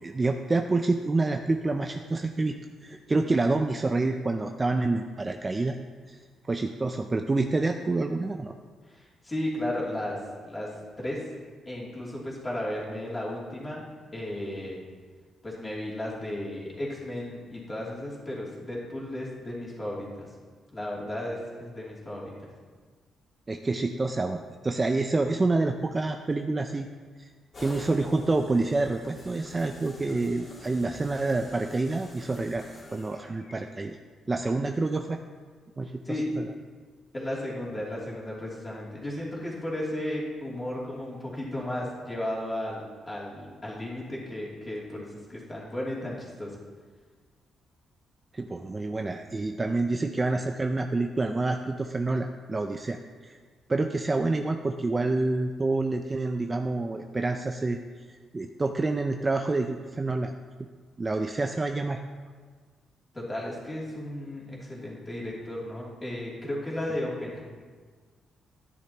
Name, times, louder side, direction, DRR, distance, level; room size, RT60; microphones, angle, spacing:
voice 1, 0.0-2.6 2.8-5.8 6.1-6.2 6.4-8.5 23.5-26.9 27.2-27.3 27.6-34.0 34.3-35.2 35.8-36.4 48.3-53.4 53.7-57.8 58.3-60.3 61.0-62.0, right 3 dB, 20° right, 5 dB, 0.4 m, -28 dB
voice 2, 8.9-10.2 10.4-10.7 11.0-11.2 11.7-13.8 14.1-14.8 15.4-20.3 20.7-22.5 36.0-36.3 37.1-46.5 63.1-67.4, left 1 dB, 20° left, -5 dB, 2.8 m, -34 dB
sound 1, 27.5-33.6, left 1 dB, 35° left, 2.6 m, -47 dB
12.0 x 9.9 x 2.9 m, 1.5 s
cardioid pair, 125°, 0 cm